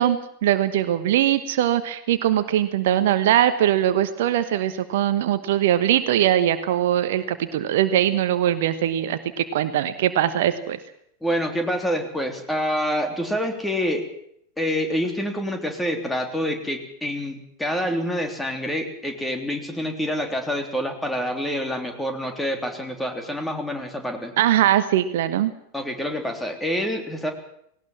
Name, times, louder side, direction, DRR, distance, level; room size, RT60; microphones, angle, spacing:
voice 1, 0.0-10.8 24.4-25.5, right 11 dB, 55° right, 12 dB, 1.2 m, -21 dB
voice 2, 11.2-14.0 14.6-24.3 25.7-27.3, equal, 5° left, 5 dB, 3.4 m, -27 dB
19.0 x 18.5 x 7.5 m, 0.72 s
figure-of-eight pair, 90°, 0 cm